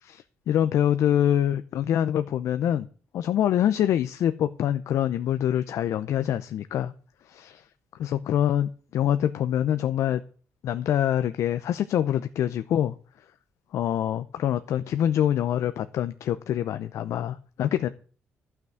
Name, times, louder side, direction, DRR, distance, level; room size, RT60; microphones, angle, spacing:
voice 1, 0.0-2.9 3.1-6.9 7.3-7.6 8.0-10.2 10.6-12.9 13.7-17.9, left 10 dB, 75° left, 0.6 m, -25 dB
12.0 x 6.0 x 7.9 m
cardioid pair, 135°, 5 cm